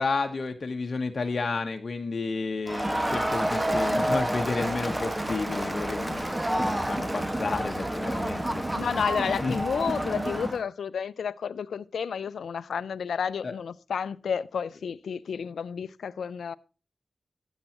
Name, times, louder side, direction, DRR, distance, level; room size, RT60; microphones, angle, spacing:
voice 1, 0.0-8.6 9.4-9.6 13.4-13.5, left 3 dB, 55° left, 1.1 m, -31 dB
Crowd, 2.7-10.6, right 1 dB, 15° right, 1.5 m, -29 dB
voice 2, 8.8-16.6, left 7 dB, 90° left, 0.4 m, -31 dB
12.5 x 8.9 x 2.9 m
cardioid pair, 45°, 0 cm